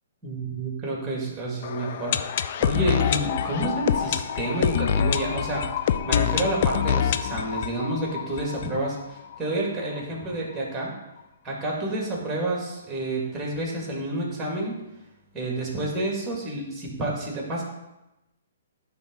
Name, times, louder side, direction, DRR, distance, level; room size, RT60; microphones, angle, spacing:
voice 1, 0.2-5.7 6.0-10.9 11.4-14.7 15.3-17.6, right 2 dB, 10° right, -2 dB, 2.3 m, -29 dB
sound 1, 1.6-9.4 9.7-9.8 9.9-10.0 10.6-10.7, left 9 dB, 50° left, 0.4 m, -26 dB
10.5 x 3.6 x 4.0 m, 0.95 s
hypercardioid pair, 140°, 0 cm